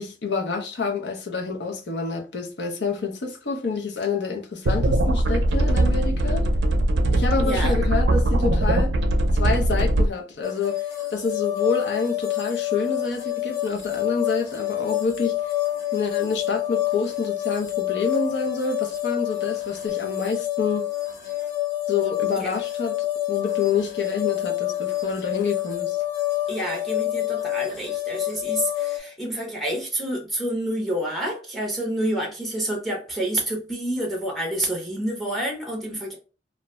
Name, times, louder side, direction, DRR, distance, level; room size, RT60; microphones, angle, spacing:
voice 1, 0.0-6.5 7.1-8.9 9.3-15.5 15.9-20.9 21.9-26.0, left 4 dB, 70° left, 0.6 m, -28 dB
sound 1, 4.7-10.1, right 1 dB, 65° right, 0.5 m, -21 dB
voice 2, 7.4-7.8 22.4-22.5 26.5-36.2, right 1 dB, ahead, 0.6 m, -28 dB
sound 2, 10.4-29.0, left 15 dB, 45° left, 1.0 m, -28 dB
2.5 x 2.1 x 2.9 m
head